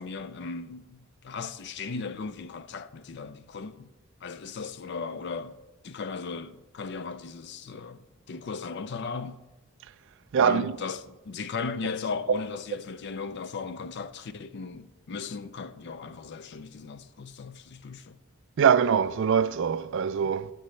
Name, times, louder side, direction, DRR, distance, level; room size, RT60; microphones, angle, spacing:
voice 1, 0.0-3.9 4.2-5.6 5.8-9.4 10.4-18.2, left 4 dB, 50° left, 0.4 m, -37 dB
voice 2, 10.3-10.7 12.3-12.4 18.6-20.5, right 7 dB, 60° right, 0.4 m, -23 dB
14.0 x 6.5 x 3.2 m
head